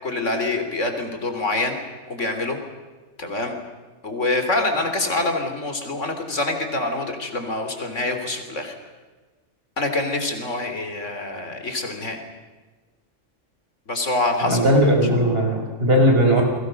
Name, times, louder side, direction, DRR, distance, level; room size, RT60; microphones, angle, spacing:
voice 1, 0.0-1.8 2.1-2.6 3.2-3.5 4.0-8.7 9.8-12.2 13.9-14.6, left 2 dB, 70° left, 5 dB, 3.9 m, -25 dB
voice 2, 14.4-16.4, equal, 50° right, 1 dB, 5.7 m, -18 dB
30.0 x 22.5 x 6.5 m, 1.3 s
omnidirectional pair, 1.3 m